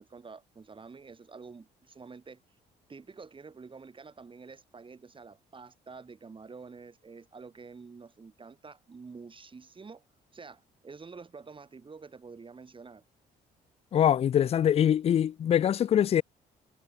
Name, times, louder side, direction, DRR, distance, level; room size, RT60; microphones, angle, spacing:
voice 1, 0.0-2.4 2.9-10.0 10.3-13.0, right 4 dB, 30° right, 4.8 m, -48 dB
voice 2, 13.9-16.2, left 9 dB, 40° left, 0.3 m, -23 dB
cardioid pair, 95°, 16 cm